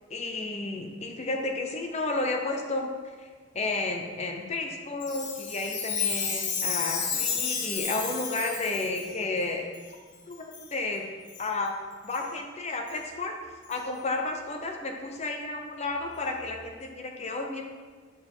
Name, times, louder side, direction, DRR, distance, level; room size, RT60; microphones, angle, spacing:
voice 1, 0.1-2.9 3.2-3.3 3.5-9.6 10.3-10.4 10.7-11.0 11.4-11.7 12.0-13.3 13.7-17.6, left 2 dB, 35° left, 2 dB, 0.8 m, -32 dB
Chime, 5.0-9.1 9.7-9.8 10.5-10.7 11.3-11.5 12.1-12.2 12.9-13.0 13.7-13.8, left 6 dB, 75° left, 1.3 m, -31 dB
8.9 x 4.2 x 5.5 m, 1.6 s
head